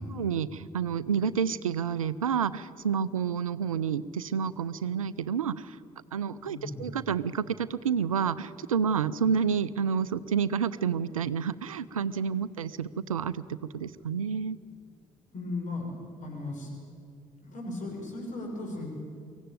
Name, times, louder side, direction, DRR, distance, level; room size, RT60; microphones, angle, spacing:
voice 1, 0.0-5.8 6.1-14.6, right 7 dB, 80° right, 17 dB, 0.5 m, -29 dB
voice 2, 6.4-6.9 15.3-15.9 16.2-16.7 17.4-18.8, left 2 dB, 45° left, 0 dB, 6.6 m, -36 dB
23.5 x 16.0 x 9.2 m, 2.3 s
figure-of-eight pair, 45°, 17 cm